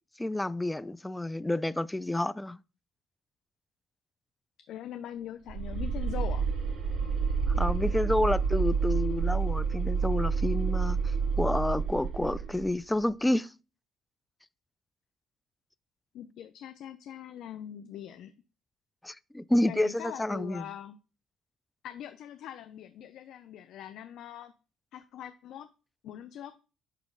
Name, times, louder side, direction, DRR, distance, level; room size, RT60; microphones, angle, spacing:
voice 1, 0.2-2.6 7.5-13.5 19.0-20.7, left 1 dB, 10° left, 0.3 m, -29 dB
voice 2, 4.7-6.5 16.1-18.3 19.7-21.0 21.8-24.5 24.9-25.7 26.0-26.5, left 10 dB, 70° left, 0.5 m, -42 dB
sound 1, 5.5-12.7, right 5 dB, 70° right, 2.9 m, -29 dB
8.3 x 3.0 x 5.3 m
supercardioid pair, 85°, 0 cm